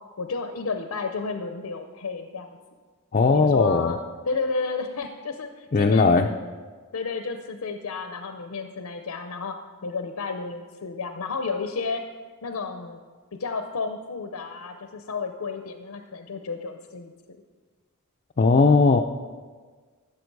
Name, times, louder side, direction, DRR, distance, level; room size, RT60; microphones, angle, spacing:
voice 1, 0.2-2.6 3.3-6.5 6.9-12.0 12.4-13.0 13.3-17.1 18.4-18.5, left 4 dB, 80° left, 6 dB, 0.7 m, -32 dB
voice 2, 3.1-3.9 5.7-6.3 18.4-19.0, left 4 dB, 35° left, 2 dB, 0.4 m, -18 dB
14.5 x 7.0 x 4.7 m, 1.5 s
head